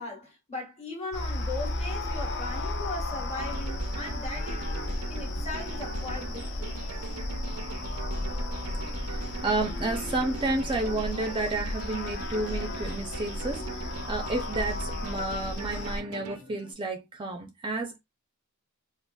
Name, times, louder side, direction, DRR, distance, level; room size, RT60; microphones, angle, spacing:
voice 1, 0.0-4.8 5.1-6.7, left 2 dB, 30° left, 1.2 m, -38 dB
sound 1, 1.1-16.0, left 1 dB, 55° left, 0.6 m, -34 dB
sound 2, 3.4-16.4, right 6 dB, 80° right, 0.5 m, -42 dB
sound 3, 3.9-16.7, equal, 70° left, 1.4 m, -49 dB
voice 2, 8.9-18.0, right 2 dB, 25° right, 0.5 m, -31 dB
4.0 x 2.4 x 2.2 m
head